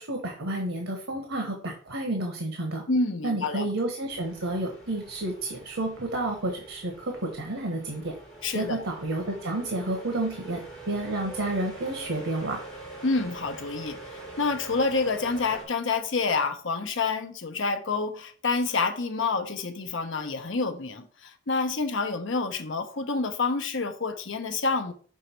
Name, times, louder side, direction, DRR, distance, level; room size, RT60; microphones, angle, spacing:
voice 1, 0.0-2.8 3.2-8.1 8.5-10.6 10.9-12.6, right 2 dB, 90° right, 1.3 m, -30 dB
voice 2, 2.9-3.7 8.4-8.8 13.0-14.0 14.4-24.9, left 4 dB, 70° left, 0.8 m, -28 dB
sound 1, 4.1-15.6, right 2 dB, 5° left, 2.8 m, -44 dB
6.3 x 3.9 x 4.4 m
head